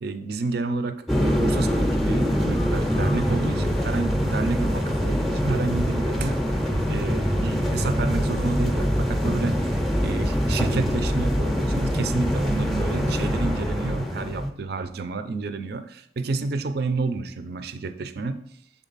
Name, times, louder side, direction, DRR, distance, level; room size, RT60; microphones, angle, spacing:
voice 1, 0.0-6.4 6.9-9.8 10.0-18.4, right 3 dB, 55° right, 10 dB, 0.4 m, -30 dB
sound 1, 1.1-14.5, equal, ahead, 0.5 m, -24 dB
7.2 x 3.7 x 4.0 m, 0.70 s
head